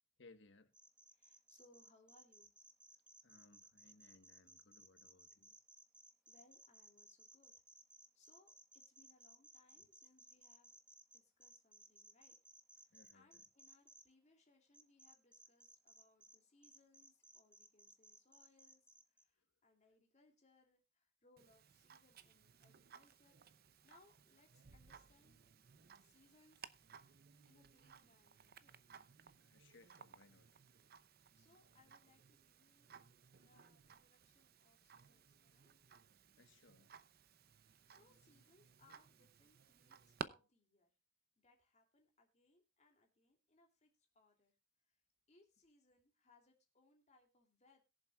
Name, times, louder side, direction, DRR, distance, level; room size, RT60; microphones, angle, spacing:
voice 1, 0.2-0.7 3.2-5.6 9.8-9.9 12.9-13.4 19.4-19.5 26.0-26.2 29.4-30.5 36.4-36.9, left 3 dB, 65° left, 1.4 m, -66 dB
sound 1, 0.7-14.0 14.7-16.4 16.6-19.2, right 2 dB, 5° right, 1.1 m, -62 dB
voice 2, 1.1-2.5 6.3-7.5 8.1-10.7 11.1-12.4 12.7-23.4 23.8-25.5 26.0-26.7 27.2-28.8 31.0-32.9 33.4-35.7 37.5-40.9 41.4-44.6 44.9-45.0 45.3-47.8, left 2 dB, 35° left, 2.9 m, -72 dB
Tick-tock, 21.4-40.3, right 6 dB, 50° right, 0.7 m, -58 dB
22.0 x 7.5 x 2.4 m
head